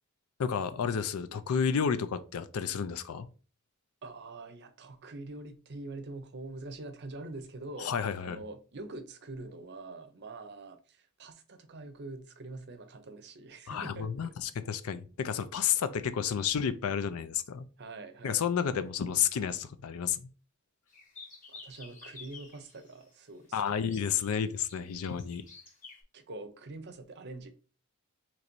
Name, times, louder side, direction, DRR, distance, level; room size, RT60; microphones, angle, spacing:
voice 1, 0.4-3.3 7.8-8.4 13.7-17.7 18.2-20.3 23.5-25.4, left 7 dB, 80° left, 0.4 m, -31 dB
voice 2, 4.0-14.3 17.8-18.4 21.5-24.1 26.1-27.5, right 2 dB, 50° right, 0.6 m, -45 dB
sound 1, 20.9-23.0 23.8-26.0, left 4 dB, 35° left, 0.9 m, -51 dB
3.0 x 2.6 x 4.4 m
head